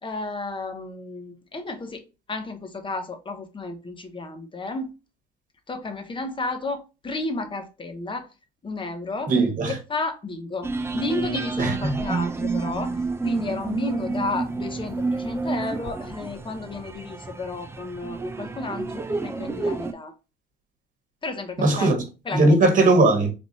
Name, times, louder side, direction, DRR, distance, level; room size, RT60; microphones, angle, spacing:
voice 1, 0.0-4.9 5.7-8.3 8.6-9.3 9.7-20.1 21.2-22.6, left 3 dB, 25° left, 0.9 m, -32 dB
voice 2, 9.3-9.7 11.6-11.9 21.6-22.0 22.3-23.3, right 2 dB, 45° right, 1.3 m, -18 dB
sound 1, 10.6-19.9, right 3 dB, 15° right, 0.4 m, -29 dB
3.5 x 2.5 x 4.0 m
supercardioid pair, 75°, 19 cm